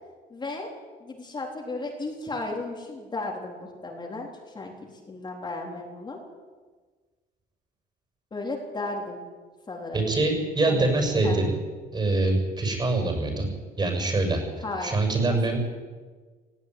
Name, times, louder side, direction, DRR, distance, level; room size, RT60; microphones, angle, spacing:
voice 1, 0.3-0.7 1.0-6.2 8.3-9.3 9.7-10.0 10.7-10.9 11.2-11.4 14.6-14.9 15.2-15.4, left 2 dB, 25° left, 0 dB, 3.8 m, -34 dB
voice 2, 9.9-11.6 11.9-13.5 13.8-14.4 14.8-15.6, right 2 dB, 25° right, 3 dB, 7.1 m, -24 dB
18.5 x 16.5 x 9.7 m, 1.4 s
cardioid pair, 110°, 17 cm